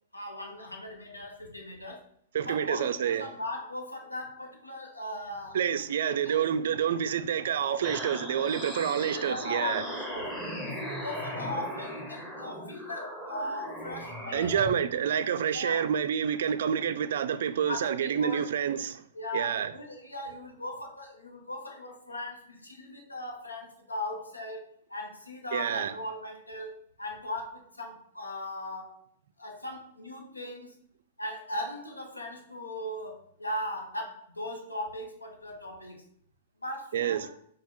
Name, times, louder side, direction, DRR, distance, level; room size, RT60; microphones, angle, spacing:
voice 1, 0.1-2.1 2.5-5.6 6.0-6.5 9.1-14.7 15.5-15.9 17.6-18.5 19.1-29.0 29.4-30.8 31.2-36.0 36.6-37.3, left 1 dB, 85° left, 0.9 m, -38 dB
voice 2, 2.3-3.3 5.5-9.8 14.3-19.0 19.3-19.7 25.5-25.9 36.9-37.3, right 8 dB, 60° right, 0.3 m, -28 dB
sound 1, 7.8-14.7, equal, 5° left, 1.0 m, -38 dB
4.4 x 2.4 x 4.4 m
figure-of-eight pair, 105°, 0 cm